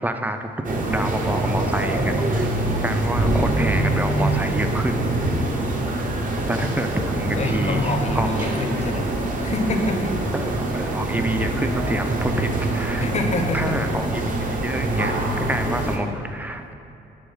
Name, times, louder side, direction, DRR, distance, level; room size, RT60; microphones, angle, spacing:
voice 1, 0.0-5.1 5.5-5.6 6.5-8.3 10.3-13.1 13.5-16.7, right 1 dB, 10° right, 7 dB, 0.4 m, -28 dB
sound 1, 0.6-16.0, right 2 dB, 40° right, 0.7 m, -24 dB
voice 2, 7.4-9.1 9.4-10.1 13.0-13.9, left 3 dB, 35° left, 4 dB, 0.6 m, -26 dB
6.5 x 3.1 x 5.5 m, 2.8 s
cardioid pair, 90°, 20 cm